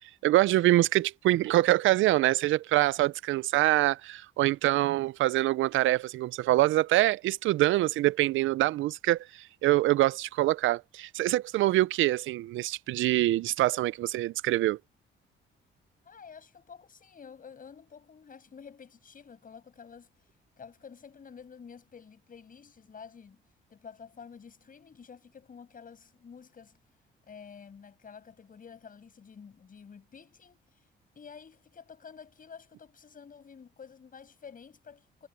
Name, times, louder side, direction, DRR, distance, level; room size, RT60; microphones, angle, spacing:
voice 1, 0.2-14.8, right 16 dB, 80° right, 0.5 m, -25 dB
voice 2, 16.0-20.3 20.6-23.4 23.7-26.8 27.3-30.8 31.1-35.3, left 6 dB, 45° left, 6.5 m, -50 dB
cardioid pair, 90°, 20 cm